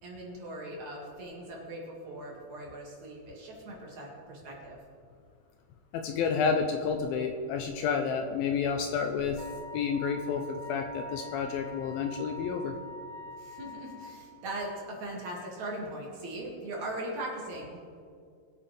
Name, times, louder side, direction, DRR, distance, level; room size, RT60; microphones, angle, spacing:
voice 1, 0.0-4.8 13.4-17.8, right 1 dB, 50° right, -3 dB, 3.1 m, -40 dB
voice 2, 5.9-9.4 9.7-12.8, left 6 dB, 80° left, 5 dB, 2.3 m, -30 dB
Wind instrument woodwind instrument, 9.4-14.2, left 1 dB, 70° right, 1.9 m, -44 dB
22.0 x 8.6 x 3.4 m, 2.2 s
omnidirectional pair, 4.7 m